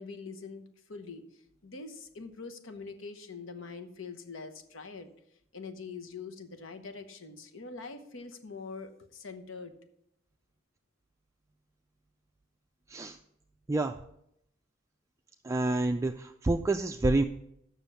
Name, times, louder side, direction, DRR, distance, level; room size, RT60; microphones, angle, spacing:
voice 1, 0.0-5.1 5.5-9.7, left 4 dB, 85° left, 8 dB, 1.0 m, -44 dB
voice 2, 15.4-17.2, right 2 dB, 15° right, 5 dB, 0.3 m, -28 dB
7.3 x 6.3 x 6.9 m, 0.76 s
head